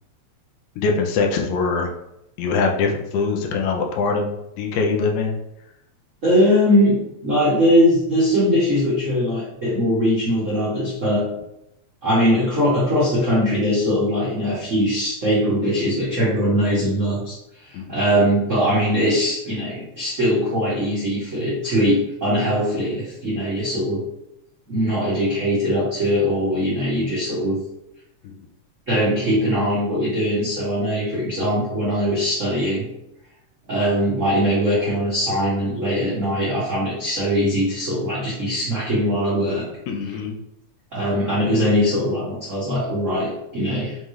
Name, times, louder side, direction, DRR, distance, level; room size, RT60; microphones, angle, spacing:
voice 1, 0.8-1.9 2.4-4.3 4.6-5.4 17.7-17.8 28.2-28.5 39.9-40.4, left 4 dB, 85° left, 2 dB, 2.0 m, -22 dB
voice 2, 6.2-11.3 12.0-17.4 17.7-24.0 24.7-27.6 28.9-32.9 33.7-39.6 40.9-44.0, equal, 80° right, -8 dB, 0.6 m, -21 dB
5.3 x 2.4 x 3.1 m, 0.84 s
omnidirectional pair, 3.4 m